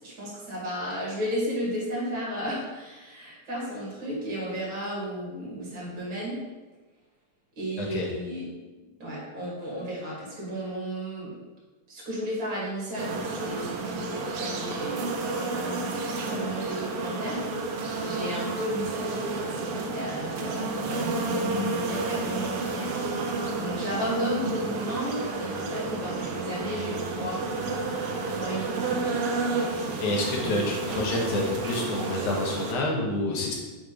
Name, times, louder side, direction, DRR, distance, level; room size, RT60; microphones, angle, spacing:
voice 1, 0.0-6.4 7.6-8.5 9.0-11.3 11.9-17.4 18.0-27.4 28.3-29.3 30.4-30.6, equal, 40° right, -6 dB, 2.9 m, -34 dB
sound 1, 13.0-32.7, right 3 dB, 75° right, 1.3 m, -31 dB
voice 2, 30.0-33.5, left 2 dB, 75° left, -2 dB, 2.6 m, -28 dB
6.6 x 4.2 x 5.2 m, 1.2 s
omnidirectional pair, 3.5 m